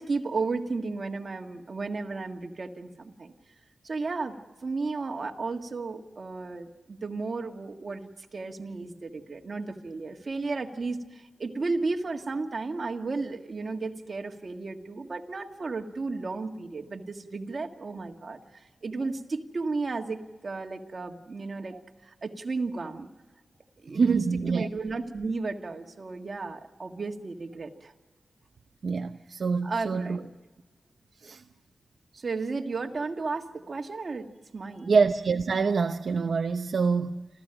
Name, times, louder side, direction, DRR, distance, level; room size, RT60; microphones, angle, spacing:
voice 1, 0.0-3.3 3.8-21.8 22.0-23.1 23.8-24.2 24.5-27.9 29.6-30.3 32.1-34.9, right 3 dB, 45° right, 1.9 m, -34 dB
voice 2, 23.9-24.7 28.8-30.2 31.2-31.4 34.9-37.3, right 5 dB, 65° right, 0.7 m, -26 dB
29.0 x 14.5 x 9.0 m
wide cardioid pair, 125°, 0 cm